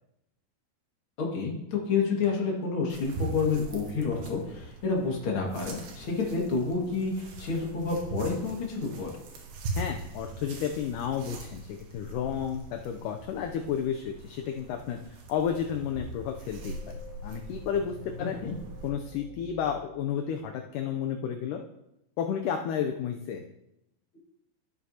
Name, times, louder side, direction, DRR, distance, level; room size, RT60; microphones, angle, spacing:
voice 1, 1.2-9.1 18.2-18.5, left 4 dB, 45° left, -2 dB, 2.1 m, -29 dB
sound 1, 2.9-18.9, right 2 dB, 90° right, 3.2 m, -41 dB
voice 2, 9.8-18.4 18.8-21.6 22.2-23.4, left 8 dB, 80° left, 4 dB, 1.9 m, -32 dB
sound 2, 16.3-20.9, left 3 dB, 30° right, 2.9 m, -49 dB
14.0 x 7.8 x 2.8 m, 0.85 s
omnidirectional pair, 4.3 m